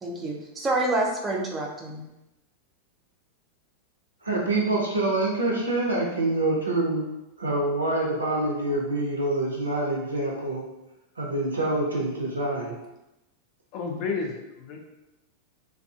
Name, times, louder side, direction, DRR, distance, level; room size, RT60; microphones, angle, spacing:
voice 1, 0.0-2.0, right 2 dB, 20° right, -1 dB, 0.5 m, -27 dB
voice 2, 4.2-7.1 7.4-10.6 11.2-12.8, right 2 dB, 75° right, -2 dB, 0.4 m, -26 dB
voice 3, 13.7-14.8, left 4 dB, 40° left, 1 dB, 0.5 m, -31 dB
2.4 x 2.3 x 2.3 m, 0.95 s
figure-of-eight pair, 90°, 0 cm